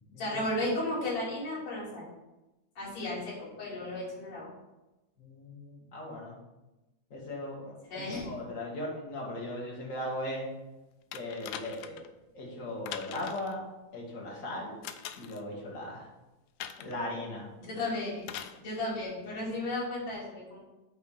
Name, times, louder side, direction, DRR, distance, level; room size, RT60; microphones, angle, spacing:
voice 1, 0.2-2.1 2.8-4.5 7.9-8.3 17.6-18.3 18.6-20.6, left 1 dB, 55° left, -7 dB, 3.9 m, -34 dB
voice 2, 5.2-6.4 7.1-10.5 11.1-12.0 12.3-13.6 13.9-14.8 15.2-16.1 16.8-17.5, left 1 dB, 35° left, -3 dB, 1.6 m, -38 dB
sound 1, 11.1-12.1 12.9-13.5 14.8-15.4 16.6-17.0 18.2-18.6 19.6-19.7, left 10 dB, 80° left, 1.6 m, -42 dB
8.5 x 3.6 x 5.8 m, 1.0 s
omnidirectional pair, 3.6 m